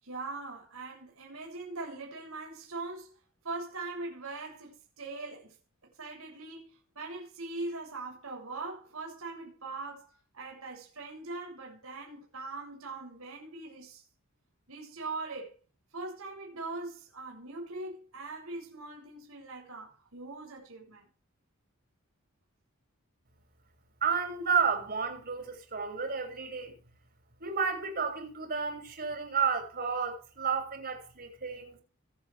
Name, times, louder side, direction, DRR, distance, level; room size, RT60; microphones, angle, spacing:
voice 1, 0.0-3.2 3.4-5.6 5.8-14.0 14.7-15.6 15.9-21.1, right 3 dB, 75° right, 7.6 m, -41 dB
voice 2, 24.0-26.7 27.4-31.8, right 6 dB, 50° right, 6.5 m, -31 dB
24.5 x 8.5 x 3.6 m
head